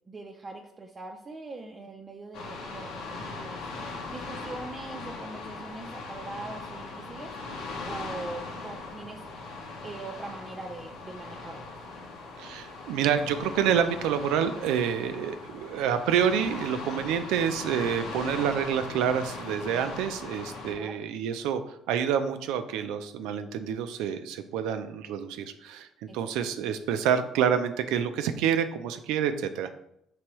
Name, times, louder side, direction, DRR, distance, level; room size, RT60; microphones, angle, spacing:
voice 1, 0.1-3.6 4.1-7.3 7.8-9.2 9.8-11.7 20.7-21.0 26.1-26.2, right 3 dB, 25° right, 2 dB, 0.4 m, -42 dB
sound 1, 2.3-20.7, left 3 dB, 85° left, 0.9 m, -39 dB
voice 2, 12.4-25.9 26.1-29.7, right 8 dB, 90° right, 9 dB, 0.4 m, -28 dB
4.7 x 3.3 x 3.0 m, 0.76 s
cardioid pair, 100°, 0 cm